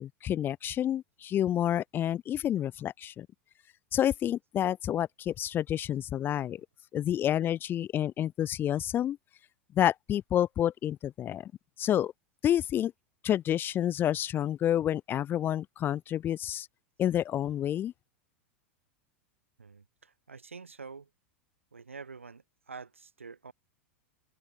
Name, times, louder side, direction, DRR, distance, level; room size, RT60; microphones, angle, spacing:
voice 1, 0.0-3.3 3.9-6.6 6.9-9.2 9.7-11.5 11.8-12.1 12.4-12.9 13.2-16.7 17.0-17.9, left 11 dB, 30° left, 1.7 m, -29 dB
voice 2, 19.6-21.1 21.7-23.5, right 5 dB, 85° right, 7.1 m, -47 dB
figure-of-eight pair, 90°, 7 cm